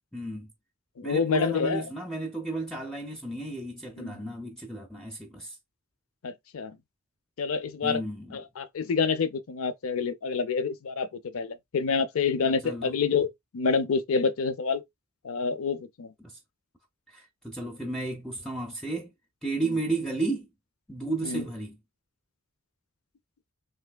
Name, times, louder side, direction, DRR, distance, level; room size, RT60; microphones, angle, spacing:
voice 1, 0.1-0.5 1.0-5.6 7.8-8.4 12.6-12.9 16.2-16.4 17.1-19.1 19.4-20.5 20.9-21.8, right 2 dB, 5° left, 0.5 m, -33 dB
voice 2, 1.0-1.9 4.0-4.1 6.2-6.8 7.4-8.0 8.3-14.8 15.2-16.1 19.6-19.7 21.2-21.4, left 5 dB, 65° left, 0.5 m, -28 dB
3.3 x 3.1 x 2.2 m
head